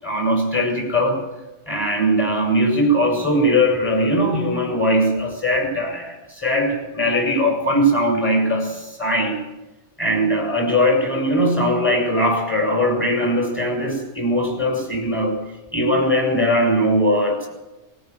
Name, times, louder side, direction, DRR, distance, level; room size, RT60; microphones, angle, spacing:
voice 1, 0.0-1.2 1.7-9.4 10.0-15.4 15.7-17.5, equal, 10° left, 1 dB, 6.1 m, -20 dB
21.5 x 14.0 x 9.4 m, 1.0 s
omnidirectional pair, 1.3 m